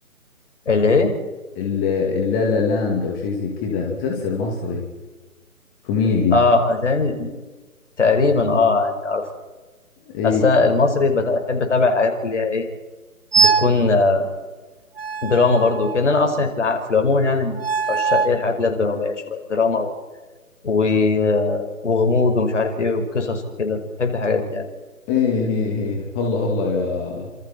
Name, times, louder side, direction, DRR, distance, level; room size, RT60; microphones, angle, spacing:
voice 1, 0.7-1.1 6.3-7.3 8.0-9.2 10.2-12.6 13.4-14.3 15.2-17.6 17.9-19.9 20.6-24.7, left 3 dB, 55° left, 4 dB, 5.3 m, -19 dB
voice 2, 1.6-4.9 5.8-6.4 10.1-10.4 25.1-27.3, left 4 dB, 15° left, 0 dB, 2.6 m, -22 dB
sound 1, 13.3-13.8 15.0-16.2 17.6-18.4, right 5 dB, 40° right, 0.7 m, -21 dB
29.0 x 27.5 x 4.5 m, 1.2 s
figure-of-eight pair, 150°, 44 cm